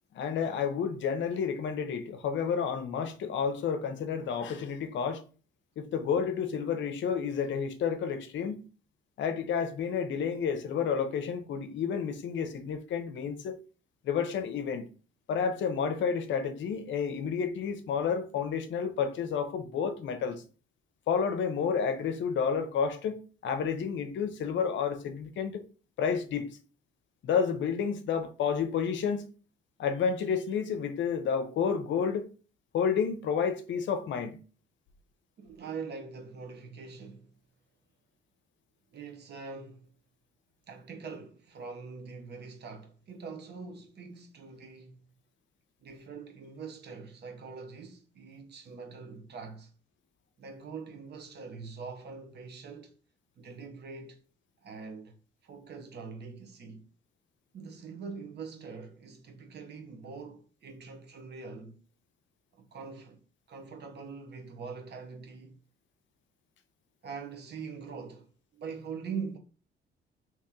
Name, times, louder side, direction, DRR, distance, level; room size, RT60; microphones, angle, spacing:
voice 1, 0.1-5.2 5.8-8.6 9.2-13.6 14.0-14.9 15.3-20.4 21.1-25.6 26.0-26.5 27.2-29.3 29.8-32.3 32.7-34.4, left 6 dB, 70° left, 0.6 m, -30 dB
voice 2, 35.4-37.3 38.9-39.9 40.7-45.1 45.8-49.7 50.4-52.9 53.4-54.2 54.6-55.1 55.4-56.9 57.5-61.8 62.5-63.2 63.5-65.6 67.0-69.4, right 5 dB, 55° right, 0.9 m, -43 dB
2.9 x 2.9 x 3.7 m
cardioid pair, 90°, 20 cm